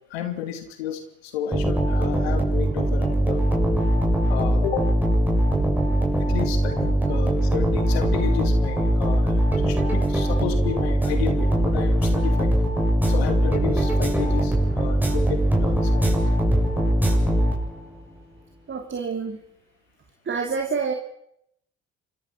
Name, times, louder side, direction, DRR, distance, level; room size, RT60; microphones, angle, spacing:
voice 1, 0.1-3.4 4.3-4.9 6.2-12.5 13.1-16.3, left 9 dB, 85° left, 8 dB, 2.5 m, -32 dB
sound 1, 1.5-18.0, right 1 dB, 5° right, 7.7 m, -21 dB
voice 2, 18.7-19.4 20.2-20.9, right 5 dB, 40° right, 3 dB, 3.2 m, -28 dB
26.5 x 22.5 x 5.9 m, 0.75 s
hypercardioid pair, 55°, 30 cm